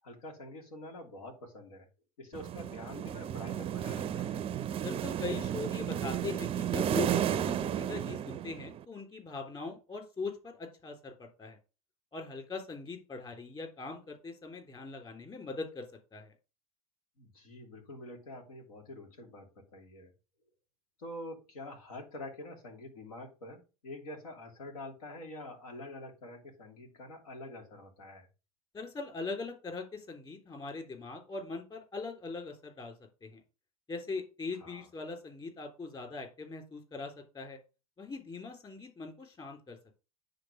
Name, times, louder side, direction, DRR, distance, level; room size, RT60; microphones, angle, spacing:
voice 1, 0.0-1.9 2.2-4.4 17.2-20.1 21.0-28.3 34.6-34.9, left 1 dB, 75° left, 3 dB, 2.9 m, -46 dB
sound 1, 2.3-8.8, right 10 dB, 30° right, 0.6 m, -33 dB
voice 2, 4.8-11.6 12.1-15.9 16.1-16.3 28.7-32.9 33.2-33.4 33.9-37.6 38.0-39.8, left 3 dB, 25° left, 4 dB, 3.6 m, -41 dB
9.7 x 4.0 x 6.5 m, 0.31 s
hypercardioid pair, 85°, 18 cm